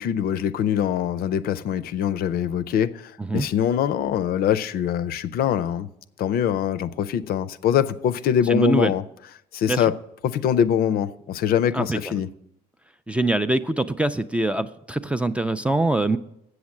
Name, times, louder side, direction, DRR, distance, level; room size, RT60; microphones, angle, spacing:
voice 1, 0.0-5.9 6.2-9.0 9.5-9.9 10.2-12.3, left 9 dB, 65° left, 0.5 m, -23 dB
voice 2, 8.5-8.9 9.7-9.9 11.7-12.2 13.1-16.2, right 2 dB, 5° right, 0.3 m, -24 dB
8.0 x 6.4 x 7.2 m
cardioid pair, 110°, 17 cm